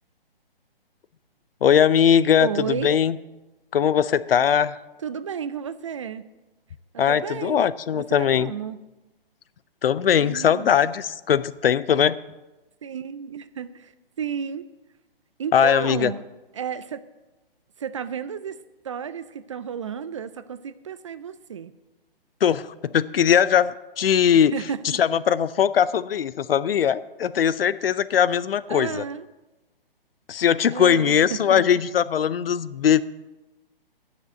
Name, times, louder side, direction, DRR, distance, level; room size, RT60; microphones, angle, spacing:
voice 1, 1.6-3.2 3.7-4.8 7.0-8.5 9.8-12.2 15.5-16.1 22.4-24.6 24.8-29.0 30.3-33.0, left 8 dB, 75° left, 17 dB, 0.6 m, -20 dB
voice 2, 2.4-3.0 5.0-6.2 6.9-8.8 10.2-10.8 12.8-13.9 14.2-14.7 15.4-16.2 16.5-17.0 17.8-21.7 24.3-25.0 28.7-29.3 30.7-31.6, right 7 dB, 35° right, 14 dB, 0.4 m, -32 dB
10.5 x 6.8 x 8.0 m, 1.1 s
hypercardioid pair, 145°, 29 cm